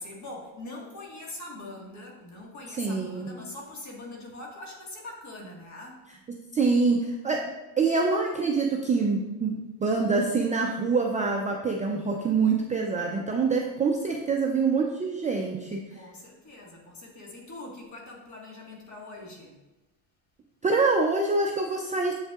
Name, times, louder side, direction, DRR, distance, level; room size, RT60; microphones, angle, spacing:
voice 1, 0.0-6.0 15.9-19.6, left 2 dB, 40° left, -1 dB, 1.6 m, -42 dB
voice 2, 2.8-3.3 6.5-7.4 7.8-15.8 20.6-22.1, right 4 dB, 20° right, 1 dB, 0.3 m, -25 dB
7.5 x 5.4 x 2.3 m, 1.0 s
cardioid pair, 115°, 45 cm